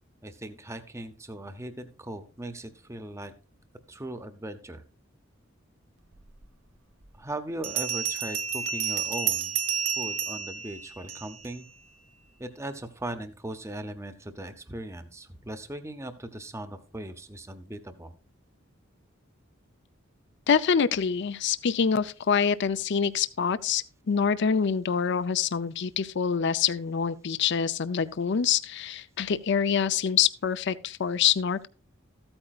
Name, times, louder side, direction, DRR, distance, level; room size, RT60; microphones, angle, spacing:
voice 1, 0.2-3.3 3.9-4.8 7.2-9.6 10.0-11.7 12.4-18.1, right 1 dB, 15° right, 0.7 m, -39 dB
Bell, 6.4-6.5 7.6-11.5, right 8 dB, 90° right, 0.9 m, -30 dB
voice 2, 20.5-31.7, left 7 dB, 60° left, 0.5 m, -26 dB
14.0 x 8.8 x 2.4 m
head